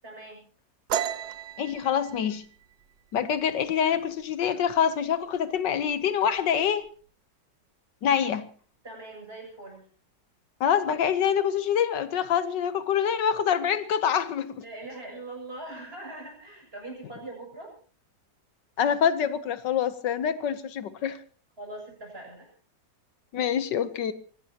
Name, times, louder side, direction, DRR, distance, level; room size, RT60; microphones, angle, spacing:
voice 1, 0.0-0.5 8.8-9.8 14.6-17.7 21.6-22.5, right 2 dB, 30° right, 8.0 m, -41 dB
sound 1, 0.9-4.3 4.7-5.0 5.4-5.9 6.2-6.9, right 9 dB, 65° right, 1.4 m, -34 dB
voice 2, 1.6-2.4 3.1-6.9 8.0-8.5 10.6-14.6 18.8-21.2 23.3-24.1, left 8 dB, 75° left, 1.6 m, -25 dB
24.5 x 18.0 x 2.9 m
omnidirectional pair, 1.9 m